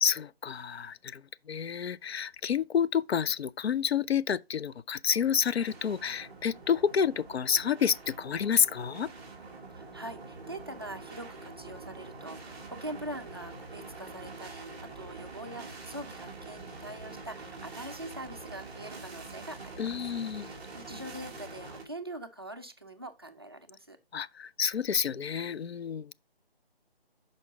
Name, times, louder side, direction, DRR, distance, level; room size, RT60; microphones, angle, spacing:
voice 1, 0.0-9.1 19.8-20.5 24.1-26.1, left 7 dB, 85° left, 0.5 m, -29 dB
sound 1, 5.1-21.8, right 3 dB, ahead, 0.8 m, -45 dB
voice 2, 9.7-19.9 20.3-24.0, right 1 dB, 25° right, 0.4 m, -43 dB
6.5 x 5.2 x 3.5 m
figure-of-eight pair, 165°, 31 cm